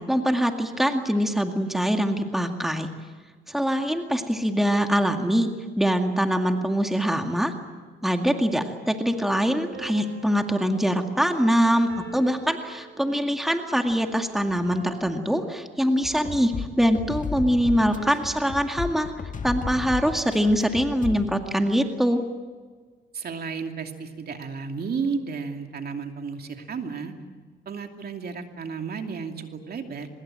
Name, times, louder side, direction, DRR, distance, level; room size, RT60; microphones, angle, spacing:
voice 1, 0.1-2.9 3.5-7.5 8.0-19.1 19.4-22.2, equal, ahead, 4 dB, 2.1 m, -23 dB
sound 1, 9.7-13.5 14.6-16.2 17.9-19.4, right 3 dB, 75° right, 7.4 m, -46 dB
sound 2, 16.0-21.3, left 5 dB, 40° left, 1.9 m, -34 dB
voice 2, 23.1-27.1 27.7-30.1, right 5 dB, 50° right, 4 dB, 2.7 m, -33 dB
24.5 x 21.5 x 8.9 m, 1.5 s
cardioid pair, 90°, 20 cm